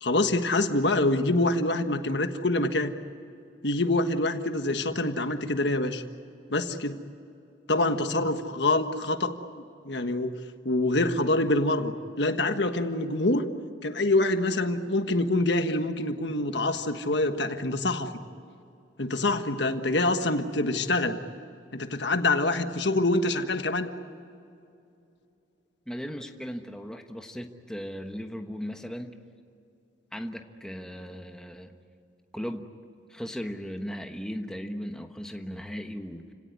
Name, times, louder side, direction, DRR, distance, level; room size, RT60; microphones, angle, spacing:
voice 1, 0.0-2.9 3.6-6.0 6.5-7.0 7.7-9.4 9.8-10.3 10.6-13.4 13.8-18.1 19.0-21.2 21.7-23.9, left 2 dB, 70° left, 7 dB, 1.5 m, -25 dB
voice 2, 25.9-29.1 30.1-31.7 32.3-32.7 33.1-36.2, equal, 5° left, 4 dB, 1.2 m, -37 dB
30.0 x 17.5 x 9.7 m, 2.6 s
head